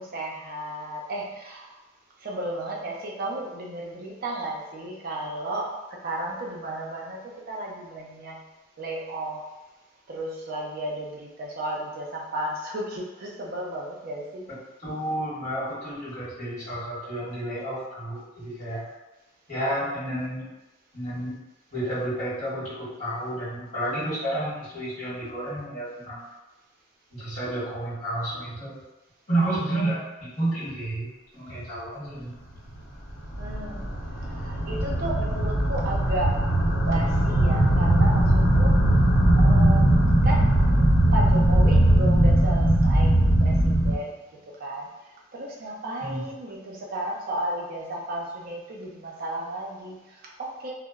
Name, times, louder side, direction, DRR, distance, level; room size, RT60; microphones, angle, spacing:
voice 1, 0.0-1.8 2.2-5.7 6.0-8.4 8.8-9.5 10.1-14.5 33.4-33.9 34.1-36.4 36.8-39.0 39.4-40.6 41.1-44.1 44.6-44.9 45.3-50.7, right 1 dB, 50° right, -2 dB, 0.5 m, -33 dB
voice 2, 14.5-18.8 19.5-20.5 20.9-21.3 21.7-26.3 27.1-28.8 29.3-32.3 46.0-46.3, right 1 dB, 40° left, -12 dB, 1.5 m, -31 dB
sound 1, 33.1-43.9, right 1 dB, 85° left, 0.8 m, -20 dB
2.8 x 2.0 x 2.3 m, 1.0 s
head